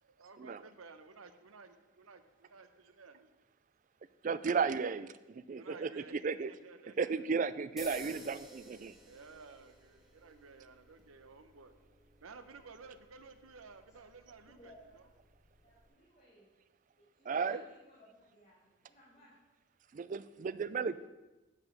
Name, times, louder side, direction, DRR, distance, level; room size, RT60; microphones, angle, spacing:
voice 1, 0.0-3.3 5.6-6.2 6.5-7.3 7.8-8.3 9.1-11.7 12.2-15.1 17.3-17.7, right 4 dB, 90° right, 9 dB, 0.8 m, -55 dB
voice 2, 4.2-6.5 7.0-9.0 17.3-17.6 19.9-21.1, right 5 dB, 40° right, 15 dB, 0.3 m, -34 dB
sound 1, 7.8-15.9, right 1 dB, ahead, 1.4 m, -55 dB
voice 3, 14.5-15.1 15.6-16.5 17.0-19.4, equal, 30° left, -8 dB, 2.1 m, -61 dB
9.4 x 5.0 x 6.4 m, 1.1 s
head